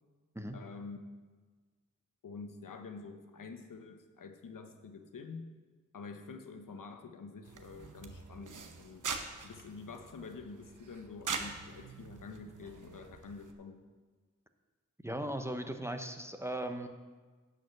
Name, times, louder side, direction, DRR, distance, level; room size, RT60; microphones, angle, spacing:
voice 1, 0.5-1.0 2.2-5.6 5.9-9.0 9.4-13.8, left 4 dB, 75° left, 6 dB, 1.0 m, -47 dB
sound 1, 7.4-13.5, right 5 dB, 70° right, 0.9 m, -43 dB
voice 2, 15.0-16.9, right 1 dB, 10° right, 6 dB, 0.9 m, -38 dB
9.9 x 5.2 x 6.8 m, 1.4 s
cardioid pair, 40°, 33 cm